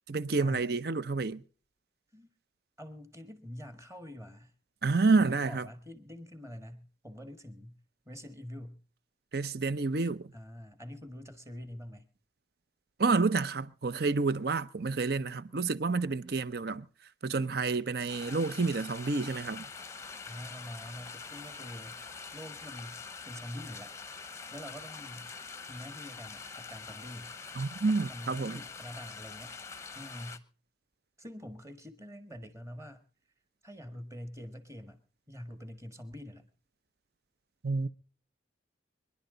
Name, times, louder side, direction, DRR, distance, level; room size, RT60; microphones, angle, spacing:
voice 1, 0.1-1.4 4.8-5.7 9.3-10.3 13.0-16.9 17.2-19.7 27.6-28.6 37.6-37.9, right 3 dB, 55° right, 0.7 m, -29 dB
voice 2, 2.8-4.5 5.1-7.8 8.0-8.8 10.3-12.1 20.2-22.0 22.3-23.9 24.5-25.3 25.7-27.3 28.1-29.6 29.9-30.4 31.2-33.0 33.6-35.0 35.3-36.5, equal, 15° right, 1.5 m, -45 dB
sound 1, 18.1-30.4, left 5 dB, 15° left, 0.8 m, -45 dB
25.0 x 11.0 x 3.9 m
head